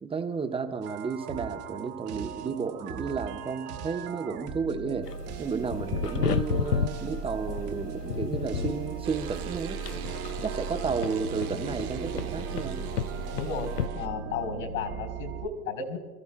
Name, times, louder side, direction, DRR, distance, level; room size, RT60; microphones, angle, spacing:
voice 1, 0.0-5.1 5.4-9.8 10.4-12.8, right 5 dB, 10° right, 7 dB, 0.9 m, -32 dB
sound 1, 0.8-15.5, right 6 dB, 30° right, 1.2 m, -38 dB
sound 2, 5.0-13.9, left 8 dB, 90° left, 0.6 m, -33 dB
sound 3, 9.0-14.1, right 9 dB, 65° right, 1.3 m, -40 dB
voice 2, 13.3-16.0, left 5 dB, 60° left, 4 dB, 3.7 m, -34 dB
30.0 x 14.5 x 2.2 m, 1.4 s
figure-of-eight pair, 95°, 46 cm